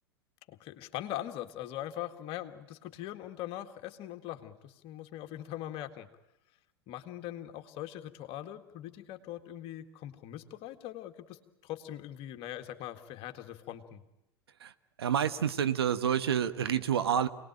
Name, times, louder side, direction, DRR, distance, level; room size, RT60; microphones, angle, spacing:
voice 1, 0.5-6.1 6.9-14.0, left 13 dB, 45° left, 6 dB, 1.9 m, -41 dB
voice 2, 15.0-17.3, right 9 dB, 75° right, 11 dB, 1.2 m, -28 dB
27.0 x 19.5 x 9.0 m, 0.91 s
figure-of-eight pair, 85°, 13 cm